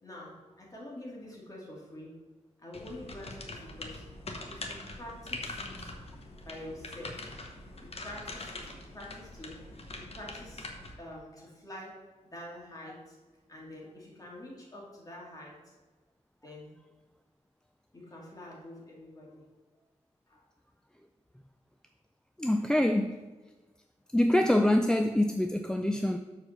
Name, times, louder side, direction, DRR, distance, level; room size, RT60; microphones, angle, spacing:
voice 1, 0.0-2.2 2.6-4.1 4.5-5.9 6.4-7.3 7.6-9.6 9.9-10.7 11.0-12.0 12.3-13.2 13.5-15.7 16.4-16.7 17.9-19.4 20.3-20.4, left 1 dB, 30° left, 2.3 m, -46 dB
sound 1, 2.7-10.9, left 2 dB, 50° left, 1.0 m, -43 dB
voice 2, 22.4-23.2 24.1-26.2, left 1 dB, 5° left, 0.3 m, -25 dB
7.0 x 4.2 x 6.6 m
wide cardioid pair, 125°, 13 cm